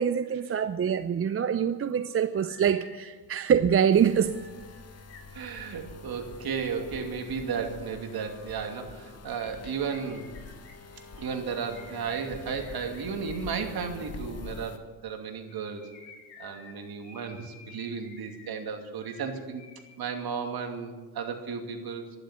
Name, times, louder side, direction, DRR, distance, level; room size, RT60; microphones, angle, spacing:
voice 1, 0.0-4.4, right 8 dB, 30° right, 0.6 m, -25 dB
sound 1, 0.8-0.9 1.2-6.0 9.3-13.5 15.3-20.0 20.2-20.3, left 4 dB, 65° left, 4.7 m, -53 dB
sound 2, 3.9-14.8, left 4 dB, 35° left, 1.6 m, -46 dB
voice 2, 5.3-10.2 11.1-15.9 16.4-19.6 20.0-22.0, right 6 dB, 50° right, 2.7 m, -34 dB
11.5 x 11.5 x 9.6 m
hypercardioid pair, 60°, 46 cm